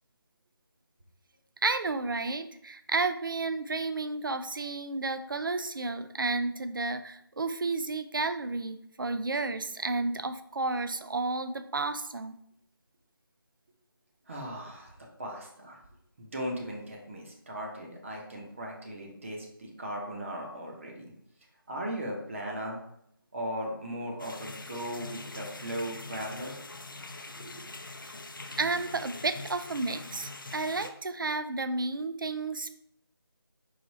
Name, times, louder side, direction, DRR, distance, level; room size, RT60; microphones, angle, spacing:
voice 1, 1.6-12.4 28.6-32.7, right 3 dB, 60° right, 10 dB, 0.4 m, -32 dB
voice 2, 14.3-15.8 16.2-21.1 21.7-22.8 23.3-26.5 27.4-27.7, equal, 35° right, -1 dB, 0.8 m, -38 dB
sound 1, 24.2-30.9, left 3 dB, 60° left, 0.5 m, -43 dB
4.8 x 2.6 x 4.1 m, 0.73 s
figure-of-eight pair, 160°, 12 cm